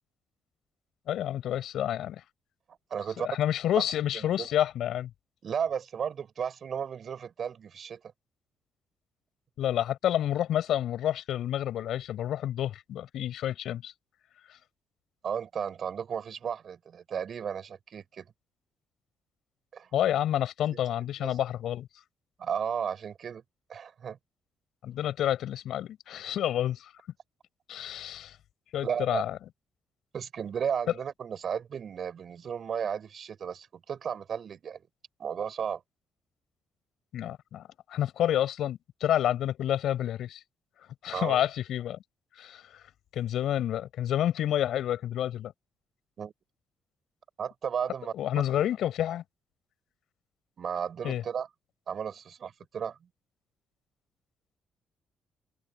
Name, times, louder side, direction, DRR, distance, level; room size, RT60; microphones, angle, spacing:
voice 1, 1.1-2.2 3.2-5.1 9.6-13.9 19.9-21.9 24.8-26.9 27.7-28.3 28.7-29.4 37.1-37.6 37.9-40.4 41.0-42.0 42.4-42.8 43.1-45.5 48.1-49.2 51.0-51.2, left 11 dB, 75° left, 7.0 m, -29 dB
voice 2, 2.9-3.3 4.1-4.5 5.4-8.0 15.2-18.3 19.7-19.9 20.7-20.8 21.2-21.4 22.4-23.4 23.7-24.2 28.8-29.2 30.1-34.9 35.2-35.8 41.1-41.4 46.2-46.3 47.4-48.1 50.6-51.5 51.9-53.1, right 7 dB, 55° right, 7.4 m, -34 dB
cardioid pair, 90°, 0 cm